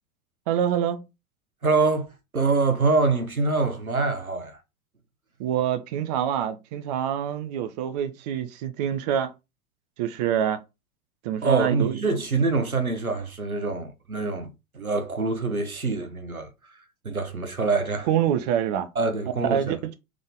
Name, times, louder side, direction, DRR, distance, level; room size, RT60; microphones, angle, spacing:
voice 1, 0.5-1.1 5.4-9.3 10.0-10.6 11.2-12.0 18.1-18.9 19.5-19.9, right 9 dB, 30° right, 0.5 m, -26 dB
voice 2, 1.6-4.6 11.4-16.5 17.0-18.1 18.9-19.8, right 3 dB, 90° right, 1.0 m, -25 dB
3.7 x 3.5 x 3.7 m
figure-of-eight pair, 95°, 42 cm